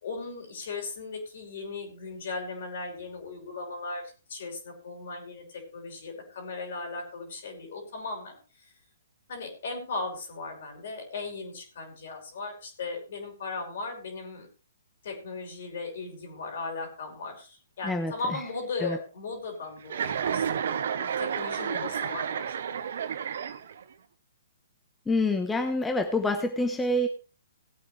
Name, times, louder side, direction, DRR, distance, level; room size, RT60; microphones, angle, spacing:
voice 1, 0.0-4.0 4.3-8.4 9.3-14.5 15.0-22.5, left 3 dB, 60° left, 4 dB, 5.0 m, -37 dB
voice 2, 17.8-18.4 18.8-19.0 25.1-27.1, left 2 dB, 10° left, 6 dB, 1.0 m, -27 dB
Chuckle chortle, 19.9-23.9, right 8 dB, 65° right, 1.0 m, -31 dB
18.0 x 8.5 x 3.3 m, 0.35 s
hypercardioid pair, 130°, 0 cm